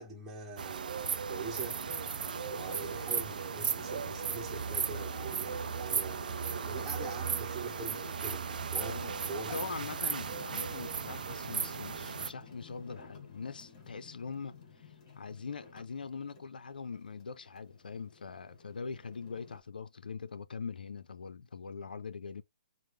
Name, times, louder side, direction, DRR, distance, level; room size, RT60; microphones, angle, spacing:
voice 1, 0.0-1.8 2.5-8.5 8.7-9.7, right 3 dB, 10° right, 1.0 m, -43 dB
sound 1, 0.6-12.3, right 6 dB, 70° right, 0.4 m, -36 dB
sound 2, 1.6-19.6, left 4 dB, 40° left, 2.0 m, -52 dB
voice 2, 8.8-9.2 9.5-22.4, left 5 dB, 85° left, 0.4 m, -42 dB
4.3 x 2.0 x 3.4 m
hypercardioid pair, 150°, 5 cm